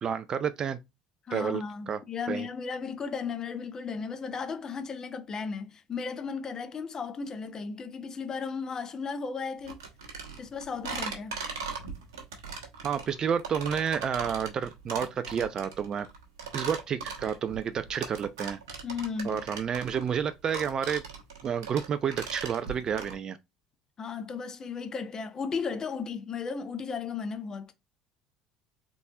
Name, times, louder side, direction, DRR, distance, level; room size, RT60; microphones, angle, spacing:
voice 1, 0.0-0.8 1.3-2.0 2.3-2.5 12.8-16.1 16.5-18.6 19.2-21.0 21.4-23.4, right 7 dB, 35° right, 0.4 m, -30 dB
voice 2, 1.3-9.8 10.4-11.4 18.8-19.4 24.0-27.7, left 5 dB, 30° left, 0.8 m, -35 dB
sound 1, 9.7-23.1, right 5 dB, 70° right, 1.1 m, -39 dB
3.9 x 3.6 x 2.7 m
figure-of-eight pair, 60°, 2 cm